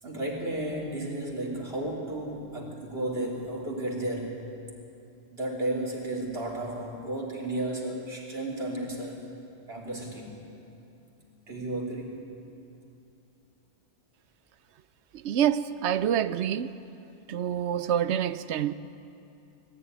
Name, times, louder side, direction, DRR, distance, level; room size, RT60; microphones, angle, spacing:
voice 1, 0.0-4.4 5.3-9.2 9.7-10.5 11.5-12.3, right 1 dB, 60° right, 3.6 m, -33 dB
voice 2, 15.2-16.7 17.3-18.7, right 10 dB, 75° right, 0.9 m, -27 dB
20.0 x 14.5 x 9.7 m
omnidirectional pair, 1.2 m